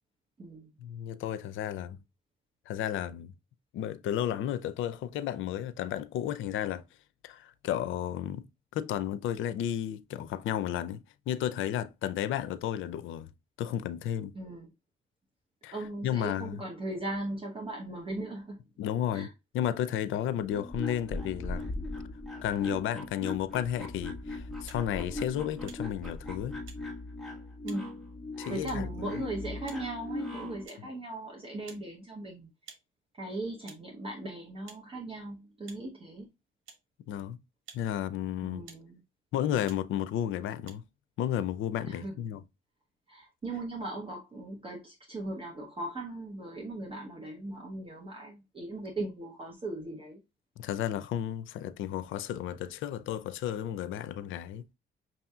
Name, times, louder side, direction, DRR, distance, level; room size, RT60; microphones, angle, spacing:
voice 1, 0.8-2.0 2.7-3.3 3.7-6.8 7.2-8.4 8.7-13.3 13.6-14.3 15.6-15.8 16.0-16.6 18.8-19.3 19.5-21.7 22.4-26.6 28.4-28.9 30.8-30.9 37.1-37.4 37.7-38.6 39.3-40.8 41.2-42.4 50.6-54.6, left 10 dB, 80° left, 0.5 m, -33 dB
voice 2, 14.3-14.7 15.7-18.6 19.1-19.3 27.6-28.0 28.5-32.5 33.2-36.3 38.4-39.0 41.8-42.1 43.1-50.2, right 2 dB, 25° right, 1.0 m, -38 dB
sound 1, 20.5-30.7, left 2 dB, ahead, 1.4 m, -39 dB
sound 2, 24.6-24.8 25.6-25.8 26.7-26.8 27.7-27.8 28.7-28.8 29.6-29.8 30.6-30.8 31.6-31.9 32.6-32.8 33.6-33.8 34.7-34.8 35.6-35.8 36.7-36.8 37.6-37.8 38.6-38.9 39.6-39.8 40.6-40.7, right 6 dB, 85° right, 1.1 m, -51 dB
6.0 x 2.7 x 2.3 m
cardioid pair, 90°, 20 cm